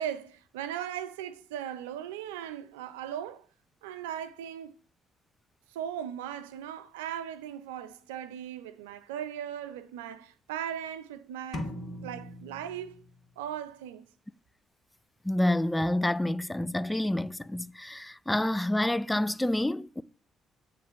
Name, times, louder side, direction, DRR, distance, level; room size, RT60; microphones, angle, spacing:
voice 1, 0.0-3.5 3.8-4.7 5.7-13.0 13.4-14.1, right 10 dB, 90° right, 0.5 m, -38 dB
sound 1, 11.5-13.4, left 1 dB, 45° left, 1.4 m, -40 dB
voice 2, 15.2-20.0, left 1 dB, 10° left, 0.4 m, -28 dB
9.1 x 3.2 x 5.7 m
hypercardioid pair, 55°, 0 cm